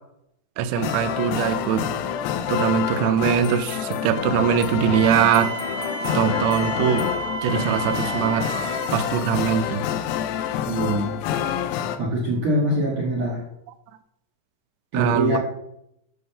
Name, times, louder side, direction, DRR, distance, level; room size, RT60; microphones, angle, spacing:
voice 1, 0.6-1.9 2.5-5.5 6.1-7.1 7.4-8.5 8.9-9.8 14.9-15.4, right 8 dB, 85° right, 9 dB, 2.6 m, -22 dB
sound 1, 0.7-12.0, left 9 dB, 85° left, 2.4 m, -27 dB
Wind instrument woodwind instrument, 4.9-9.0, right 4 dB, 60° left, 2.7 m, -32 dB
voice 2, 10.7-11.1 12.0-13.4 14.9-15.4, right 1 dB, 65° right, -5 dB, 1.8 m, -23 dB
9.4 x 3.8 x 6.7 m, 0.79 s
omnidirectional pair, 5.3 m